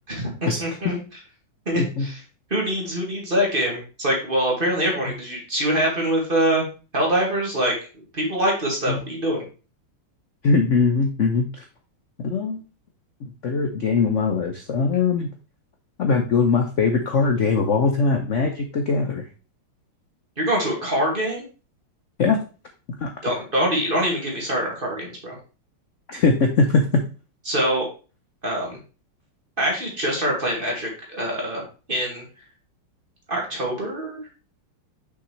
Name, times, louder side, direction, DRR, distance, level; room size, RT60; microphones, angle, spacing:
voice 1, 0.1-1.0 1.7-2.2 2.5-6.6 6.9-7.7 8.1-9.4 20.4-21.4 23.2-25.4 27.5-27.9 28.4-28.8 29.6-31.6 31.9-32.2 33.3-34.2, right 1 dB, 25° right, -2 dB, 1.9 m, -24 dB
voice 2, 1.7-2.1 8.9-9.0 10.4-11.5 12.2-12.6 13.2-15.3 16.0-19.2 22.2-22.4 23.0-23.1 26.1-26.8, left 4 dB, 80° left, 3 dB, 0.6 m, -21 dB
6.3 x 5.8 x 3.1 m, 0.34 s
omnidirectional pair, 2.4 m